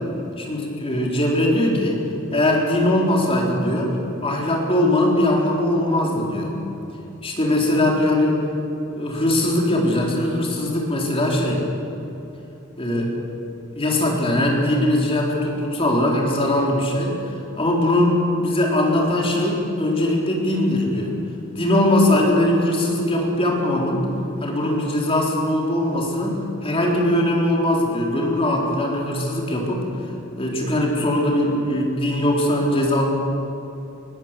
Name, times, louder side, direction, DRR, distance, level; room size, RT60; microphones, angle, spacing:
voice 1, 0.4-2.0 2.3-4.0 4.2-6.6 7.2-8.4 8.9-11.6 12.8-13.1 13.7-17.2 17.6-21.1 21.6-24.1 24.4-29.8 30.4-33.1, left 1 dB, 25° left, -1 dB, 3.7 m, -20 dB
20.0 x 17.5 x 7.5 m, 2.9 s
head